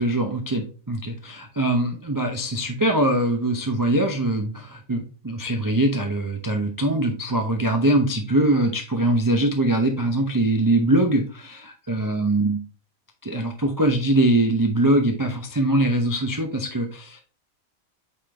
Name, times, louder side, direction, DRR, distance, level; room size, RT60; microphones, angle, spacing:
voice 1, 0.0-12.6 13.2-17.2, right 1 dB, 30° right, 4 dB, 0.4 m, -22 dB
8.4 x 3.8 x 3.3 m, 0.38 s
omnidirectional pair, 1.5 m